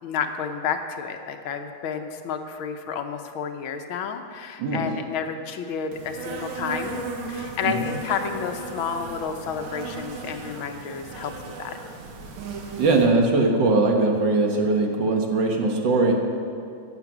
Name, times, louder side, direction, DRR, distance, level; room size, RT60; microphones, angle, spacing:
voice 1, 0.0-7.0 7.3-11.3 11.6-11.8, left 6 dB, 80° left, 6 dB, 1.6 m, -30 dB
Insect, 5.9-13.1, right 3 dB, 85° right, 2.1 m, -36 dB
voice 2, 12.8-16.1, right 3 dB, 60° right, 1 dB, 1.9 m, -21 dB
14.5 x 8.5 x 6.0 m, 2.5 s
omnidirectional pair, 2.3 m